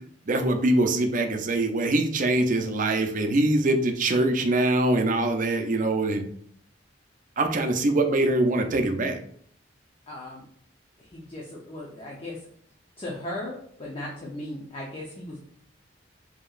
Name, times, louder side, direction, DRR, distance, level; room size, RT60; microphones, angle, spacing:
voice 1, 0.3-6.2 7.4-9.2, right 2 dB, 45° right, 6 dB, 0.5 m, -23 dB
voice 2, 10.1-10.4 11.0-12.4 13.0-15.4, left 1 dB, 30° left, -3 dB, 0.7 m, -37 dB
5.0 x 2.9 x 2.4 m, 0.63 s
head